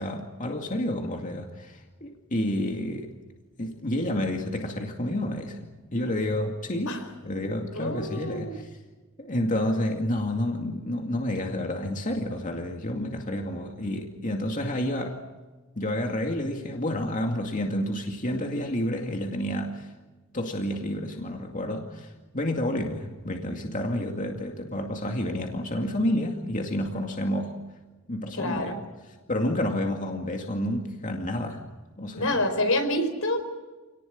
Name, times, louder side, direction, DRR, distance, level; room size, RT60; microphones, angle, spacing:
voice 1, 0.0-1.7 2.0-3.1 3.6-6.9 7.2-8.6 9.2-15.2 15.8-19.8 20.3-22.1 22.3-27.5 28.1-28.7 29.3-31.6 32.0-32.4, left 1 dB, 40° left, 2 dB, 2.3 m, -29 dB
voice 2, 7.7-8.5 28.3-28.8 32.1-33.4, left 1 dB, 80° left, 7 dB, 4.9 m, -27 dB
28.0 x 19.0 x 8.7 m, 1.2 s
head